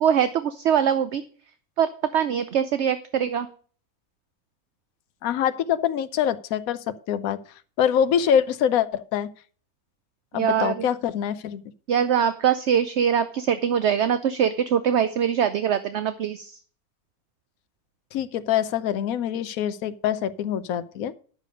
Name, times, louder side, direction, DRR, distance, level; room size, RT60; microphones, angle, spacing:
voice 1, 0.0-1.2 1.8-3.5 10.3-10.9 11.9-16.6, right 8 dB, 60° right, 11 dB, 0.8 m, -23 dB
voice 2, 5.2-7.4 7.8-9.3 10.3-11.6 18.1-21.1, left 9 dB, 75° left, 12 dB, 1.1 m, -24 dB
10.5 x 6.7 x 5.2 m, 0.43 s
omnidirectional pair, 1.5 m